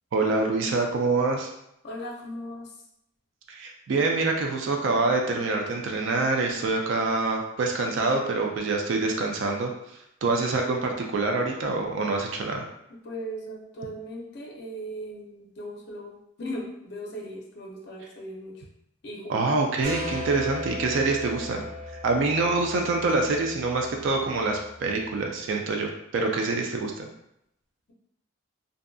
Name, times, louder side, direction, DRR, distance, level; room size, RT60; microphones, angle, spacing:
voice 1, 0.1-1.5 3.5-9.7 10.2-12.7 19.3-21.6 22.0-27.1, right 3 dB, 65° right, 2 dB, 0.3 m, -26 dB
voice 2, 1.8-2.7 13.0-18.6 19.0-19.7, equal, 50° left, -1 dB, 0.5 m, -38 dB
sound 1, 19.8-25.3, left 2 dB, 20° right, 1.1 m, -38 dB
2.6 x 2.4 x 2.3 m, 0.79 s
head